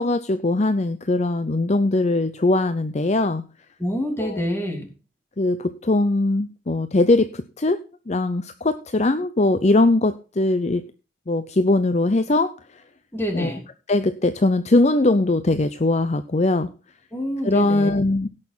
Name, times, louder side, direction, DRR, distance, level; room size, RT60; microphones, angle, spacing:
voice 1, 0.0-3.4 4.2-4.4 5.4-7.8 8.1-10.8 11.3-12.5 13.3-13.5 13.9-16.7 17.4-18.3, left 2 dB, 35° left, 11 dB, 0.6 m, -20 dB
voice 2, 3.8-4.9 13.1-13.6 17.1-17.9, equal, 15° left, 4 dB, 3.0 m, -27 dB
17.0 x 6.5 x 4.1 m, 0.35 s
head